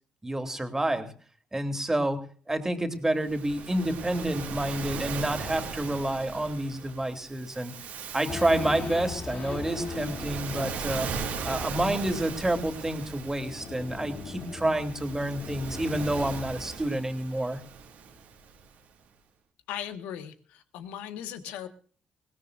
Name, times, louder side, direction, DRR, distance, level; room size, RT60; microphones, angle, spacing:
voice 1, 0.2-1.1 1.5-2.2 2.5-7.7 8.1-11.1 11.4-17.6, right 1 dB, 15° right, 6 dB, 2.8 m, -29 dB
Waves surf, 3.2-18.7, right 5 dB, 75° right, 2.5 m, -39 dB
Race car auto racing / Idling / Accelerating revving vroom, 8.3-16.9, left 5 dB, 65° left, 2.6 m, -40 dB
voice 2, 19.7-21.7, left 10 dB, 85° left, 9 dB, 1.4 m, -38 dB
21.0 x 17.5 x 2.5 m, 0.43 s
supercardioid pair, 60°, 3 cm